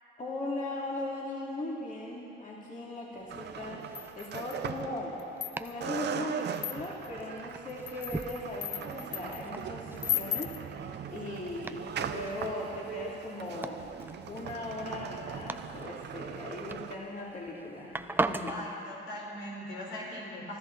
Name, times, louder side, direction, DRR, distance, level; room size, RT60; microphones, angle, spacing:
voice 1, 0.2-5.2 5.6-13.8 14.2-18.5, left 2 dB, 40° left, -4 dB, 2.8 m, -38 dB
Domestic sounds home sounds, 3.1-18.7, right 2 dB, 10° right, 0.5 m, -41 dB
sound 1, 3.3-5.5 5.8-16.9, right 8 dB, 60° right, 0.8 m, -40 dB
sound 2, 3.9-4.7 5.2-5.9 6.5-7.1 7.7-9.4 10.0-10.6, left 11 dB, 60° left, 0.5 m, -35 dB
voice 2, 18.5-20.6, left 1 dB, 80° left, -3 dB, 4.5 m, -40 dB
25.0 x 13.0 x 4.1 m, 3.0 s
cardioid pair, 90°, 20 cm